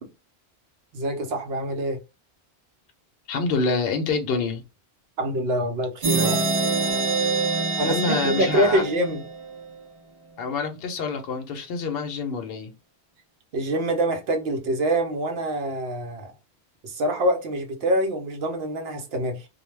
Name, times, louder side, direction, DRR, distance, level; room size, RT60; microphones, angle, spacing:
voice 1, 0.9-2.0 5.2-6.4 7.8-9.2 13.5-16.3 16.8-19.5, right 1 dB, 70° right, 0.9 m, -25 dB
voice 2, 3.3-4.6 7.8-8.8 10.4-12.7, left 4 dB, 65° left, 0.8 m, -27 dB
sound 1, 6.0-9.6, right 3 dB, 40° right, 0.7 m, -25 dB
2.2 x 2.2 x 3.1 m
omnidirectional pair, 1.1 m